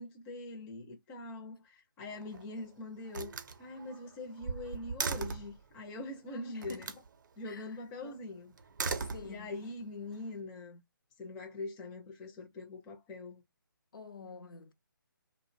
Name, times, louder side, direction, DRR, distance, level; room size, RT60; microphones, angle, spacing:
voice 1, 0.0-3.3 3.6-6.9 7.4-8.5 9.2-10.8 11.2-13.4, left 2 dB, 10° left, 0.4 m, -43 dB
Slam, 2.0-2.6 3.1-5.6 6.6-7.1 8.6-9.7, right 5 dB, 55° right, 0.5 m, -38 dB
voice 2, 6.3-7.0 7.4-8.2 9.0-9.6 13.9-14.7, left 5 dB, 70° left, 0.6 m, -49 dB
2.5 x 2.1 x 2.5 m
figure-of-eight pair, 150°, 12 cm